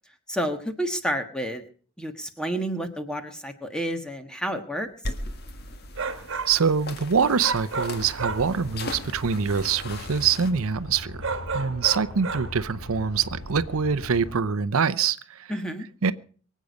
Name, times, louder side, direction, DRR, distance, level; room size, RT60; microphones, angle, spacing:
voice 1, 0.3-1.6 2.0-4.9 15.5-15.9, equal, 5° left, 6 dB, 1.3 m, -30 dB
sound 1, 5.0-10.5, left 2 dB, 45° left, 1.6 m, -38 dB
sound 2, 6.0-6.6 7.4-8.6 11.2-12.6, right 4 dB, 55° right, 1.5 m, -31 dB
voice 2, 6.5-11.2 11.5-15.5 16.0-16.1, right 6 dB, 75° right, 15 dB, 0.6 m, -24 dB
sound 3, 7.9-14.4, left 1 dB, 70° left, 2.5 m, -40 dB
24.0 x 8.4 x 5.2 m, 0.44 s
head